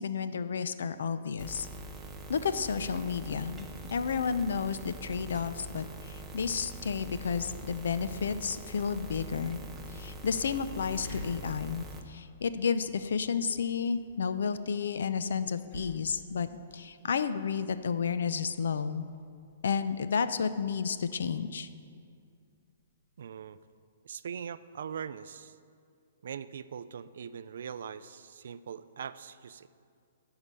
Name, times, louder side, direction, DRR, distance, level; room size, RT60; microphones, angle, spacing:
voice 1, 0.0-1.7 2.3-9.6 9.9-16.5 16.7-19.0 19.6-21.7, left 6 dB, 80° left, 12 dB, 0.5 m, -31 dB
sound 1, 1.4-12.0, right 1 dB, 5° right, 0.5 m, -44 dB
sound 2, 8.4-23.7, left 1 dB, 35° left, 1.4 m, -54 dB
voice 2, 23.2-23.6 24.0-25.5 26.2-29.7, right 7 dB, 60° right, 14 dB, 0.3 m, -41 dB
13.0 x 4.8 x 6.7 m, 2.3 s
hypercardioid pair, 175°, 0 cm